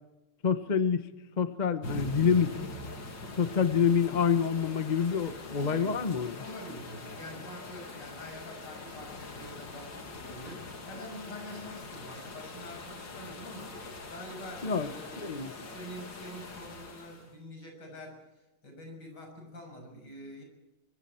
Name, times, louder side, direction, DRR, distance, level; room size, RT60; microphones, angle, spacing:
voice 1, 0.4-1.1 1.4-2.6 3.4-6.4 14.6-15.5, left 6 dB, 30° left, 11 dB, 0.8 m, -27 dB
sound 1, 1.8-17.3, left 3 dB, 90° left, 3.3 m, -43 dB
voice 2, 5.5-6.1 6.4-18.2 18.6-20.4, equal, 70° left, 3 dB, 7.1 m, -46 dB
25.0 x 24.0 x 4.4 m, 1.0 s
omnidirectional pair, 1.9 m